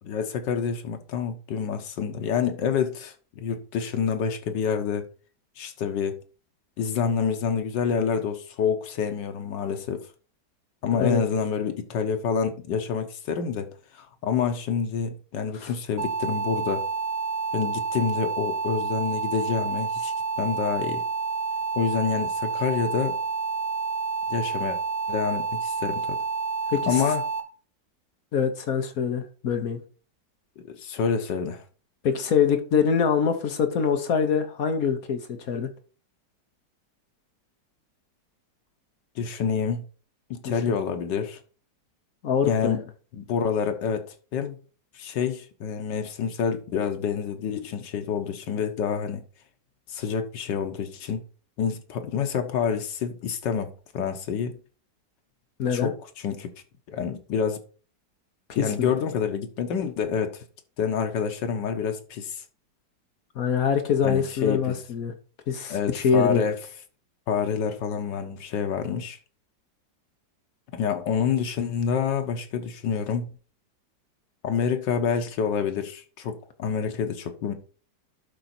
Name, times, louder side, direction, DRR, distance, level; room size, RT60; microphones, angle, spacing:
voice 1, 0.0-5.1 5.6-6.1 6.8-10.0 10.8-13.7 13.9-16.8 17.5-20.1 20.4-21.0 21.7-23.2 24.3-24.8 25.1-26.2 26.9-27.2 30.6-31.6 39.2-39.8 40.3-41.4 42.5-42.8 43.1-44.1 44.3-44.6 45.0-49.2 49.9-51.2 51.6-54.6 55.7-56.5 56.9-57.6 58.5-60.4 60.8-62.4 64.0-64.8 65.7-66.6 67.3-69.2 70.7-73.3 74.4-77.5, left 6 dB, 85° left, 1.7 m, -27 dB
sound 1, 16.0-27.4, right 4 dB, 55° right, 1.8 m, -29 dB
voice 2, 26.7-27.0 28.3-29.8 32.0-35.7 40.4-40.8 42.2-42.8 55.6-55.9 58.6-58.9 63.3-65.1 65.5-66.4, left 7 dB, 60° left, 1.4 m, -24 dB
11.5 x 3.9 x 4.3 m
omnidirectional pair, 1.9 m